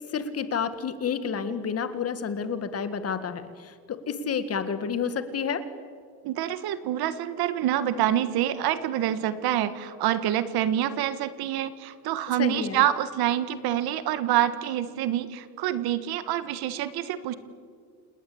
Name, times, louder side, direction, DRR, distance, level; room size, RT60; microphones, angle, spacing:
voice 1, 0.1-5.6 12.4-12.8, left 6 dB, 40° left, 11 dB, 1.8 m, -30 dB
voice 2, 6.2-17.3, right 11 dB, 85° right, 13 dB, 1.6 m, -26 dB
28.5 x 18.5 x 8.6 m, 2.1 s
cardioid pair, 145°, 36 cm